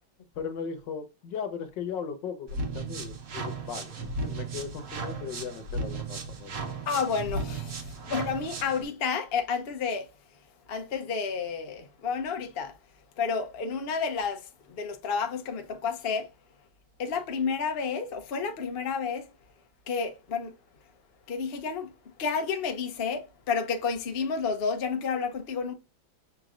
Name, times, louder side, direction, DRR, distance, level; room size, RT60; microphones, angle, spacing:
voice 1, 0.3-6.6, left 6 dB, 70° left, 1.5 m, -37 dB
sound 1, 2.5-8.8, right 3 dB, 55° right, 1.2 m, -35 dB
voice 2, 6.9-10.1 10.7-12.7 13.2-16.3 17.0-19.3 19.9-20.5 21.3-21.9 22.2-25.7, left 5 dB, 55° left, 0.6 m, -30 dB
6.4 x 3.0 x 2.5 m
omnidirectional pair, 2.1 m